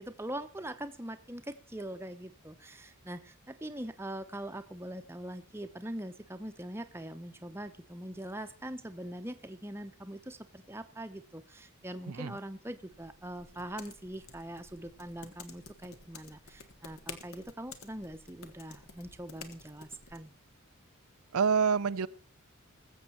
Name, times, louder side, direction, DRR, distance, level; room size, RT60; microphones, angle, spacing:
voice 1, 0.0-20.3, right 1 dB, 10° right, 8 dB, 0.8 m, -42 dB
voice 2, 12.1-12.4 21.3-22.1, right 6 dB, 80° right, 13 dB, 0.6 m, -27 dB
sound 1, 12.9-20.2, left 5 dB, 65° left, 1.4 m, -51 dB
21.0 x 7.4 x 4.3 m, 0.34 s
head